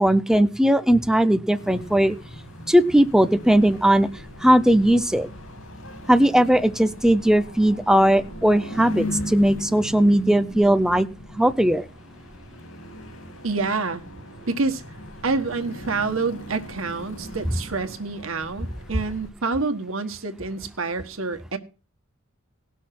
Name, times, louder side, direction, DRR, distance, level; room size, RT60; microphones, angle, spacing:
voice 1, 0.0-2.2 2.7-4.1 4.4-5.3 6.1-11.1 11.4-11.9, right 1 dB, 5° right, 11 dB, 0.5 m, -18 dB
sound 1, 1.5-19.3, equal, 85° left, 2.5 m, -38 dB
voice 2, 13.4-14.0 14.5-14.8 15.2-21.6, right 3 dB, 90° right, 7 dB, 1.4 m, -27 dB
18.0 x 6.4 x 5.9 m, 0.34 s
head